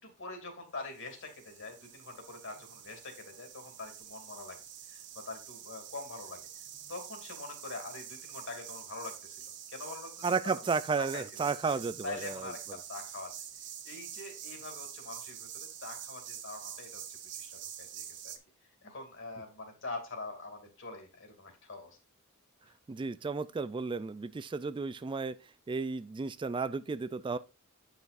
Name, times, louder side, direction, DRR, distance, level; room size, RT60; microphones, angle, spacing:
voice 1, 0.0-4.6 4.9-6.4 6.9-10.6 11.0-13.4 13.8-17.0 17.4-18.4 18.8-22.0 22.6-22.7, left 3 dB, 60° left, 2.6 m, -44 dB
sound 1, 0.9-18.4, right 9 dB, 55° right, 1.1 m, -46 dB
voice 2, 10.2-12.5 22.9-25.3 25.7-27.4, right 4 dB, 20° right, 0.3 m, -33 dB
9.6 x 6.0 x 2.5 m
head